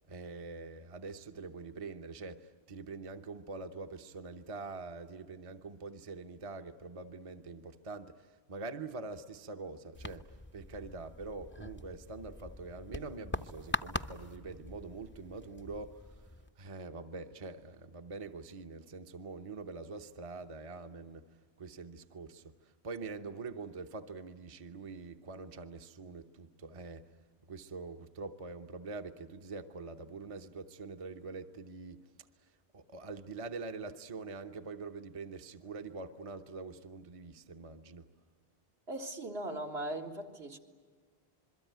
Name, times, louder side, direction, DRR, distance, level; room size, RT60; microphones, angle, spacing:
voice 1, 0.1-16.3 16.6-21.2 21.6-27.1 27.4-32.0 32.4-38.1, right 3 dB, 35° right, 0.9 m, -44 dB
sound 1, 9.9-16.5, left 2 dB, 15° left, 0.6 m, -43 dB
voice 2, 38.9-40.6, right 1 dB, 75° right, 2.3 m, -39 dB
27.0 x 22.5 x 9.2 m
omnidirectional pair, 1.1 m